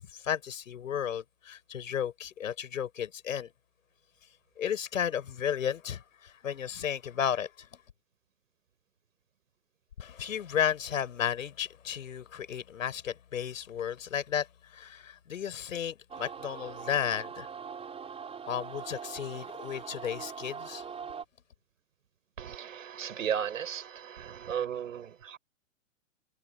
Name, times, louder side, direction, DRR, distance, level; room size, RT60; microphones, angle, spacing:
voice 1, 0.1-3.5 4.6-7.8 10.0-17.5 18.5-20.8, left 9 dB, 85° left, 7.5 m, -33 dB
sound 1, 16.1-21.2, right 6 dB, 15° right, 5.3 m, -42 dB
voice 2, 22.4-25.4, right 8 dB, 90° right, 6.0 m, -35 dB
hypercardioid pair, 135°, 39 cm